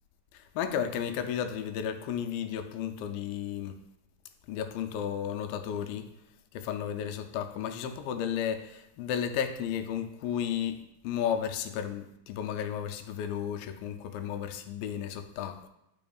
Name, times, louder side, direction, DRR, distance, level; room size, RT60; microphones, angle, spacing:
voice 1, 0.3-3.8 4.5-6.1 6.5-10.8 11.0-15.7, left 9 dB, 85° left, 2.3 m, -33 dB
11.0 x 5.2 x 2.3 m
omnidirectional pair, 4.0 m